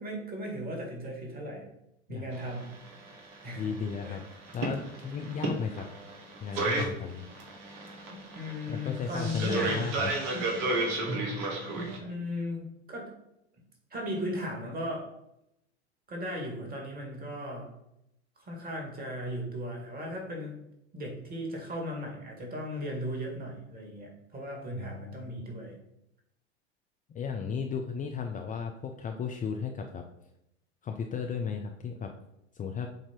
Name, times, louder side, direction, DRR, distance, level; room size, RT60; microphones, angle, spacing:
voice 1, 0.0-1.7 2.1-2.7 3.4-3.7 4.0-4.2 8.1-10.0 12.0-13.1 13.9-15.1 16.1-17.7 18.4-20.6 20.9-25.8, equal, 25° right, 0 dB, 2.3 m, -37 dB
sound 1, 2.3-12.0, right 2 dB, 55° right, 1.7 m, -33 dB
voice 2, 3.6-5.9 6.4-7.3 8.7-10.5 24.8-25.3 27.1-30.0 30.8-32.1 32.5-32.9, left 6 dB, 25° left, 3 dB, 0.6 m, -35 dB
7.6 x 2.9 x 4.6 m, 0.81 s
hypercardioid pair, 85°, 33 cm